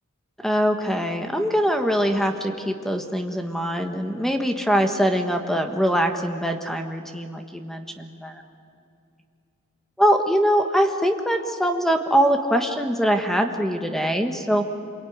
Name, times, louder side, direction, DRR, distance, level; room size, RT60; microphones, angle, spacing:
voice 1, 0.4-8.4 10.0-14.7, equal, ahead, 5 dB, 1.4 m, -23 dB
26.5 x 22.5 x 9.5 m, 2.5 s
head